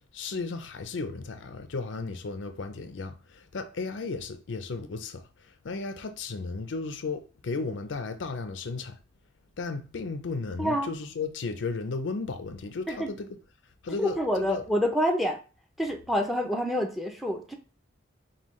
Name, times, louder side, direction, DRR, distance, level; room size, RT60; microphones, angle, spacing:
voice 1, 0.0-9.0 9.6-13.4 13.8-14.6, left 3 dB, 80° left, 0.5 m, -34 dB
voice 2, 10.6-10.9 12.9-13.1 14.0-15.4 15.8-17.6, equal, ahead, 0.5 m, -27 dB
5.4 x 2.3 x 3.1 m
head